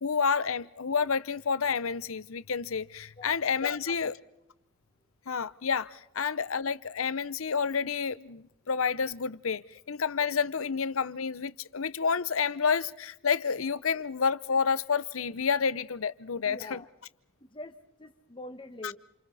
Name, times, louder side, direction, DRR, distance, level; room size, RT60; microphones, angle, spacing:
voice 1, 0.0-4.1 5.3-16.8 18.8-18.9, left 6 dB, 75° left, 0.8 m, -29 dB
voice 2, 3.7-4.1 16.4-16.9 17.4-19.0, left 1 dB, 25° left, 1.4 m, -45 dB
28.5 x 28.5 x 4.1 m
head